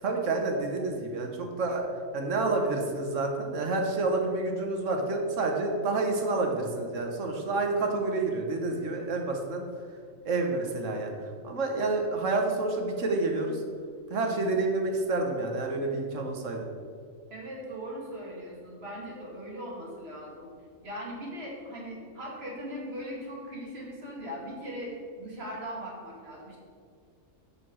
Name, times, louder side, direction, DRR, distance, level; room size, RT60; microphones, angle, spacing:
voice 1, 0.0-1.9 2.1-9.6 10.2-13.6 14.1-16.7, right 3 dB, 70° right, 2 dB, 1.4 m, -29 dB
voice 2, 17.3-20.5 20.8-26.6, equal, 50° right, -4 dB, 2.2 m, -39 dB
5.8 x 5.6 x 6.1 m, 2.1 s
omnidirectional pair, 1.3 m